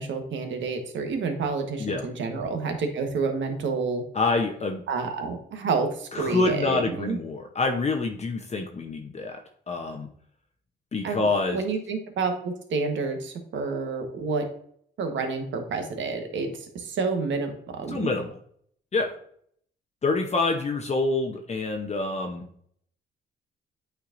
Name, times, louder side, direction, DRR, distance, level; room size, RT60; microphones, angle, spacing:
voice 1, 0.0-4.0 4.9-7.2 11.0-14.4 15.0-18.1, right 4 dB, 70° right, 5 dB, 1.2 m, -29 dB
voice 2, 4.1-4.8 6.1-9.4 9.7-10.1 10.9-11.6 17.9-18.4 18.9-19.1 20.0-22.4, left 3 dB, 35° left, 3 dB, 0.7 m, -26 dB
8.6 x 4.6 x 2.6 m, 0.64 s
cardioid pair, 90°, 20 cm